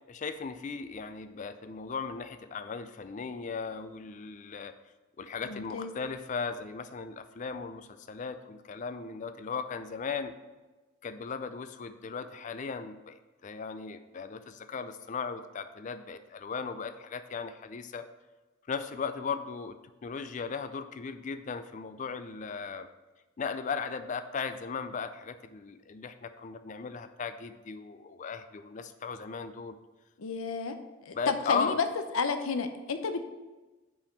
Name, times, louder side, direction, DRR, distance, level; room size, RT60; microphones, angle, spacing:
voice 1, 0.1-4.7 5.2-10.3 11.0-13.2 13.4-18.0 18.7-19.8 20.0-22.9 23.4-29.8 31.1-31.8, left 5 dB, 35° left, 10 dB, 0.4 m, -37 dB
voice 2, 5.4-5.9 30.2-30.7 31.0-31.9 32.1-33.2, left 5 dB, 85° left, 8 dB, 0.7 m, -31 dB
5.5 x 5.2 x 5.8 m, 1.2 s
head